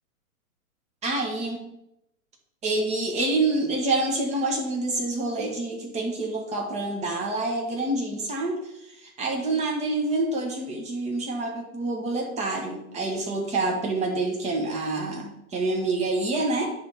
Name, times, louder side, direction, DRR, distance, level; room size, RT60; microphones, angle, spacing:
voice 1, 1.0-1.6 2.6-8.6 8.9-16.7, right 2 dB, 15° right, 0 dB, 1.5 m, -27 dB
10.0 x 3.7 x 5.9 m, 0.84 s
hypercardioid pair, 140°, 43 cm